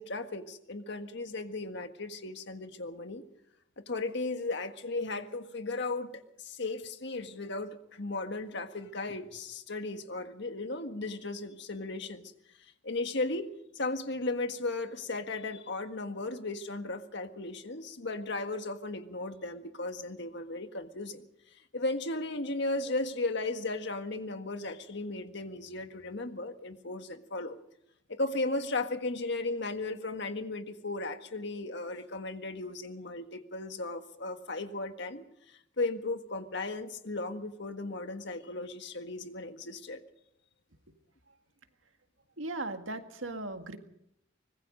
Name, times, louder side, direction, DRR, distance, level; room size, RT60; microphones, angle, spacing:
voice 1, 0.0-3.2 3.9-12.3 12.8-13.5 13.7-21.3 21.7-27.6 28.1-40.0, left 2 dB, 60° left, 7 dB, 1.7 m, -36 dB
voice 2, 42.4-43.8, right 2 dB, 80° right, 6 dB, 1.9 m, -37 dB
24.5 x 21.0 x 5.3 m, 0.76 s
head